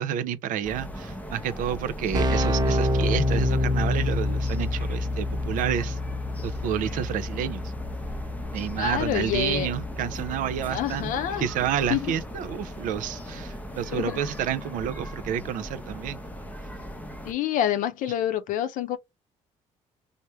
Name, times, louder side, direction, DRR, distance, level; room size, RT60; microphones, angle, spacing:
voice 1, 0.0-6.0 6.4-7.7 8.5-16.2, right 9 dB, 70° right, 0.6 m, -30 dB
sound 1, 0.6-17.3, equal, 10° left, 0.7 m, -39 dB
Keyboard (musical), 1.6-1.7 1.8-12.5, left 2 dB, 30° right, 1.0 m, -28 dB
voice 2, 8.8-9.7 10.7-11.5 11.9-12.1 13.9-14.2 17.2-19.0, left 11 dB, 70° left, 0.6 m, -27 dB
3.3 x 2.1 x 4.3 m
supercardioid pair, 80°, 14 cm